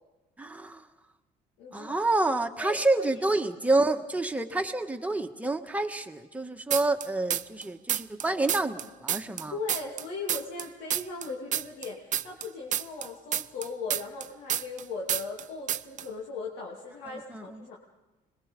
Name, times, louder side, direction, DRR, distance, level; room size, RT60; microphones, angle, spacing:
voice 1, 0.4-0.9 1.7-9.6 17.1-17.7, right 2 dB, 10° right, 5 dB, 1.5 m, -28 dB
voice 2, 1.6-1.9 2.6-3.2 9.5-17.8, left 4 dB, 85° left, -2 dB, 2.6 m, -38 dB
sound 1, 6.7-7.6 7.9-10.7 10.9-14.8 15.1-15.4 15.7-16.0, right 10 dB, 50° right, 0.6 m, -29 dB
26.0 x 21.5 x 5.3 m, 1.2 s
cardioid pair, 110°, 17 cm